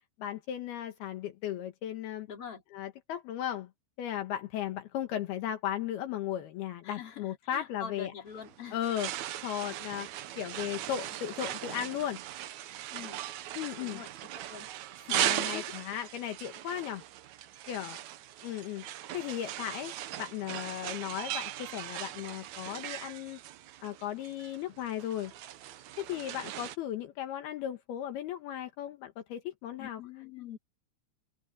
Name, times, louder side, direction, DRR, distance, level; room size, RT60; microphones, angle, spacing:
voice 1, 0.2-2.3 2.7-3.7 4.0-8.1 8.7-9.1 9.4-10.1 10.4-12.2 13.6-14.0 15.1-17.0 17.7-18.0 18.4-18.8 19.1-19.9 20.2-23.4 23.8-25.3 26.0-30.0, left 11 dB, 75° left, 3.3 m, -36 dB
voice 2, 2.3-2.6 6.8-8.8 12.9-13.2 13.8-14.1 14.5-14.7 15.0-16.0 29.8-30.6, left 7 dB, 35° left, 4.0 m, -44 dB
sound 1, 8.3-26.8, right 13 dB, 85° right, 1.6 m, -39 dB
open air
omnidirectional pair, 4.6 m